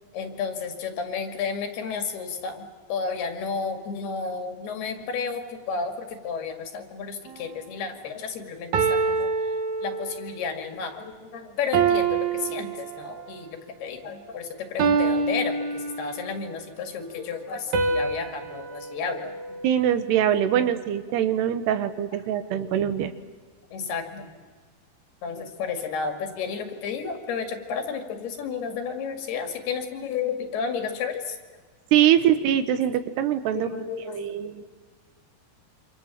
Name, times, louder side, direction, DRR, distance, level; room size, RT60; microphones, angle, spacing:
voice 1, 0.1-9.3 9.8-19.6 20.4-20.7 22.4-22.5 23.7-24.3 25.2-31.4 32.2-32.4 33.5-34.5, left 5 dB, 80° left, 6 dB, 4.3 m, -32 dB
sound 1, 7.3-7.6 8.7-10.4 11.7-13.4 14.8-16.4 17.7-20.2, right 5 dB, 55° right, 2.5 m, -26 dB
voice 2, 19.6-23.1 31.9-33.7 34.1-34.7, right 10 dB, 85° right, 11 dB, 3.4 m, -23 dB
27.5 x 26.0 x 7.5 m, 1.5 s
omnidirectional pair, 4.6 m